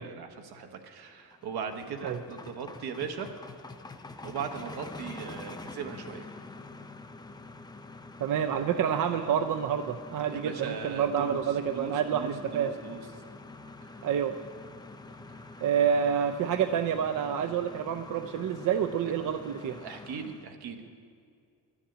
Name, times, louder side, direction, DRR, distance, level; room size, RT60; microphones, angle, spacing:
voice 1, 0.0-3.3 4.2-6.3 10.3-11.4 11.7-13.0 13.8-14.1 15.3-15.6 19.8-20.9, right 6 dB, 75° right, 6 dB, 1.2 m, -39 dB
sound 1, 1.1-20.5, left 3 dB, 10° left, 0.3 m, -46 dB
voice 2, 8.2-12.7 14.0-14.4 15.6-19.8, right 8 dB, 55° right, 7 dB, 0.5 m, -28 dB
11.5 x 7.2 x 9.1 m, 2.3 s
cardioid pair, 155°, 38 cm